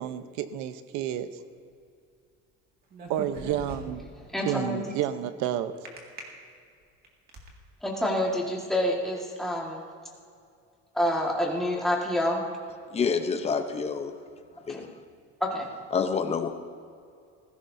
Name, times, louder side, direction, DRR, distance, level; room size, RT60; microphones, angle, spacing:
voice 1, 0.0-1.4 3.1-4.0 4.4-5.8, right 11 dB, 75° right, 11 dB, 0.9 m, -30 dB
sound 1, 2.9-4.1 5.9-6.2 6.8-7.5, right 2 dB, 35° right, 2.1 m, -40 dB
voice 2, 4.3-4.9 7.8-9.8 10.9-12.4 14.7-14.9 15.4-15.7, left 1 dB, ahead, -3 dB, 1.8 m, -27 dB
voice 3, 12.9-14.1 14.7-14.9 15.9-16.5, left 5 dB, 20° left, 7 dB, 0.7 m, -27 dB
19.0 x 16.0 x 2.7 m, 2.3 s
cardioid pair, 165°, 29 cm